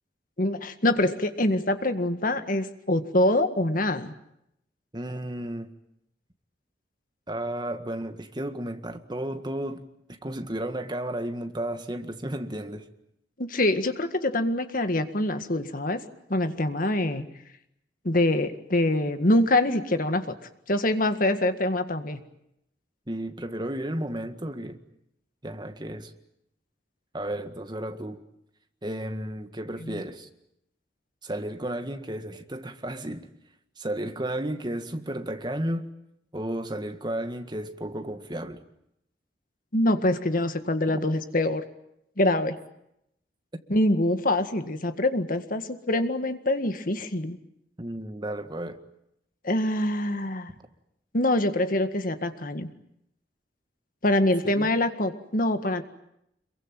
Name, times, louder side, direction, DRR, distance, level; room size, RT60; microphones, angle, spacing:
voice 1, 0.4-4.1 13.4-16.0 16.3-17.3 18.0-20.3 20.7-22.2 29.8-30.0 39.7-41.6 42.2-42.6 43.7-47.4 49.4-50.5 51.1-52.7 54.0-55.8, left 1 dB, 50° left, 1.9 m, -25 dB
voice 2, 4.9-5.7 7.3-12.9 23.1-24.8 25.4-26.1 27.1-28.2 28.8-30.3 31.2-33.3 33.8-35.9 36.3-38.6 47.8-48.8 54.4-54.7, right 1 dB, 25° right, 1.9 m, -33 dB
26.5 x 23.0 x 9.1 m
head